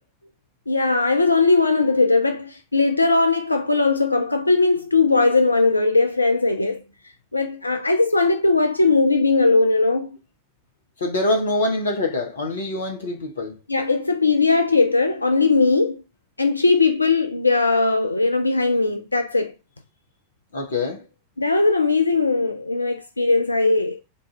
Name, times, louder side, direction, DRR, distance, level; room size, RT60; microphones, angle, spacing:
voice 1, 0.7-6.8 7.3-10.2 13.7-16.0 16.4-19.5 21.4-24.0, left 3 dB, 80° left, 0.3 m, -19 dB
voice 2, 11.0-13.6 20.5-21.0, left 2 dB, 65° left, 0.8 m, -24 dB
4.0 x 2.4 x 4.3 m
figure-of-eight pair, 90°, 0 cm